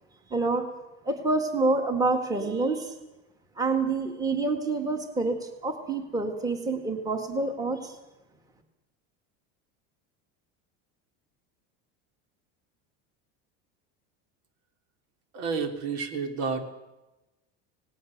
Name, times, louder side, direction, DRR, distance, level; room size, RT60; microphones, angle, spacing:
voice 1, 0.3-0.7 1.0-2.9 3.6-8.0, right 3 dB, 10° right, 6 dB, 1.9 m, -27 dB
voice 2, 15.3-16.6, right 5 dB, 80° right, 5 dB, 3.5 m, -30 dB
26.5 x 19.0 x 6.6 m, 1.0 s
cardioid pair, 175°, 32 cm